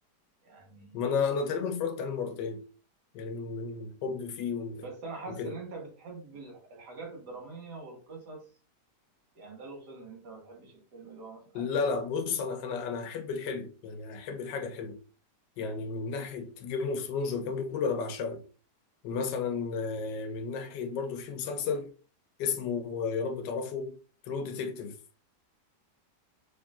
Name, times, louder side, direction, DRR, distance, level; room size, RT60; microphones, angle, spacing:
voice 1, 0.4-1.0 4.8-8.5 9.3-12.0 12.4-12.5, right 3 dB, 70° right, 1.7 m, -44 dB
voice 2, 0.9-2.6 3.1-4.8 5.4-5.5 11.5-15.0 15.6-18.4 19.0-21.9 22.4-24.0 24.3-25.0, left 5 dB, 80° left, 1.3 m, -33 dB
3.7 x 3.2 x 2.3 m
omnidirectional pair, 1.9 m